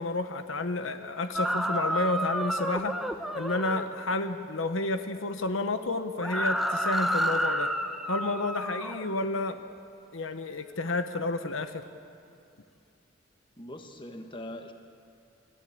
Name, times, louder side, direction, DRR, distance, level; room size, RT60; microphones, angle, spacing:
voice 1, 0.0-3.0 3.3-7.7 8.1-9.6 10.1-11.8, left 2 dB, 80° left, 9 dB, 1.1 m, -30 dB
sound 1, 1.3-3.9 6.2-9.1, equal, ahead, 0.9 m, -30 dB
voice 2, 13.6-14.7, left 1 dB, 25° left, 5 dB, 1.3 m, -41 dB
28.0 x 14.5 x 8.6 m, 2.4 s
head